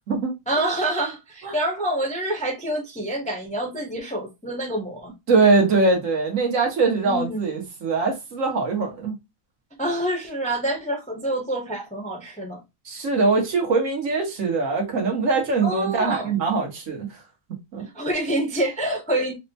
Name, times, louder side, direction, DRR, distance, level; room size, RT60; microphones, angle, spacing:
voice 1, 0.5-5.1 7.0-7.4 9.8-12.6 15.6-16.4 17.9-19.3, right 1 dB, 10° left, 0.5 m, -27 dB
voice 2, 5.3-9.1 12.8-17.1 17.7-17.8, right 3 dB, 75° right, 1.4 m, -22 dB
4.1 x 2.1 x 2.7 m
omnidirectional pair, 1.4 m